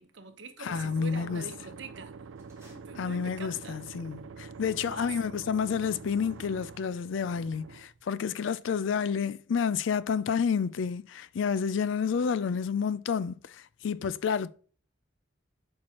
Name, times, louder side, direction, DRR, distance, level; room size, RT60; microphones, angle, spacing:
voice 1, 0.0-2.2 2.7-3.8 4.8-5.2, right 4 dB, 65° right, 0.9 m, -44 dB
voice 2, 0.6-1.4 3.0-14.5, left 6 dB, 75° left, 0.4 m, -30 dB
sound 1, 0.7-8.0, right 5 dB, 90° right, 0.4 m, -46 dB
sound 2, 2.3-3.7, right 1 dB, 15° right, 1.9 m, -60 dB
8.4 x 4.7 x 2.9 m
head